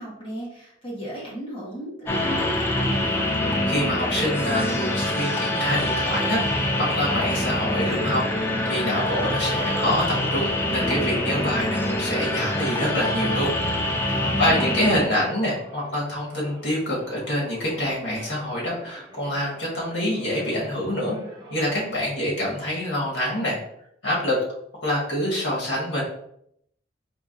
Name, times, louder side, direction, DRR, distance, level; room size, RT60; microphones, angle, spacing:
voice 1, 0.0-3.3 14.1-15.1, equal, 30° left, -5 dB, 1.3 m, -36 dB
sound 1, 2.1-15.0, left 1 dB, 10° left, 0.3 m, -25 dB
sound 2, 2.6-14.2 14.9-22.0, right 1 dB, 25° right, 0.7 m, -39 dB
voice 2, 3.7-8.2 8.7-13.5 13.8-21.2 21.5-23.6 24.0-24.4 24.8-26.0, left 1 dB, 80° left, -4 dB, 1.5 m, -26 dB
4.6 x 2.6 x 2.6 m, 0.73 s
head